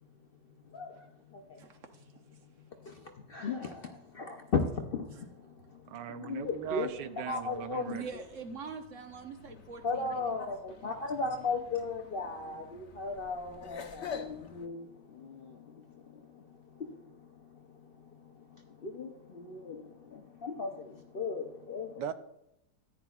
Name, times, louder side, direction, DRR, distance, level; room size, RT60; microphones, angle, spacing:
voice 1, 0.7-1.0 1.3-1.6 2.8-6.9 7.3-8.0 9.8-22.0, left 4 dB, 85° left, 3 dB, 0.5 m, -37 dB
voice 2, 1.6-2.1 5.1-5.2 7.9-10.2, right 5 dB, 50° right, 6 dB, 1.2 m, -43 dB
voice 3, 5.9-8.1 22.0-22.1, right 10 dB, 80° right, 11 dB, 1.2 m, -39 dB
sound 1, 6.3-14.7, left 6 dB, 55° left, 0.8 m, -49 dB
14.0 x 10.0 x 2.3 m, 0.85 s
omnidirectional pair, 1.9 m